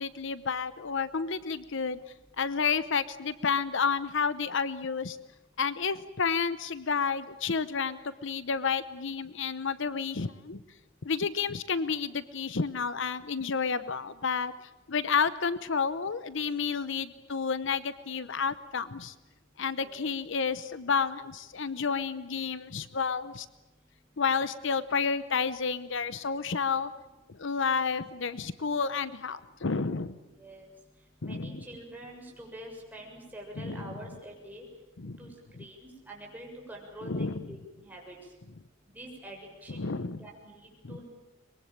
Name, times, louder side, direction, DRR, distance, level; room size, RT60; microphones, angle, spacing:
voice 1, 0.0-2.0 2.4-5.2 5.6-10.6 11.0-14.5 14.9-19.1 19.6-23.5 24.2-26.9 27.3-30.1 31.2-31.6 33.6-34.0 35.0-35.2 37.0-37.4 39.7-40.2 40.8-41.0, left 5 dB, 65° left, 15 dB, 0.9 m, -30 dB
voice 2, 30.4-30.7 31.2-34.6 35.2-35.3 35.6-38.2 39.0-41.1, right 1 dB, 10° right, -1 dB, 7.0 m, -46 dB
24.0 x 22.0 x 9.0 m, 1.0 s
head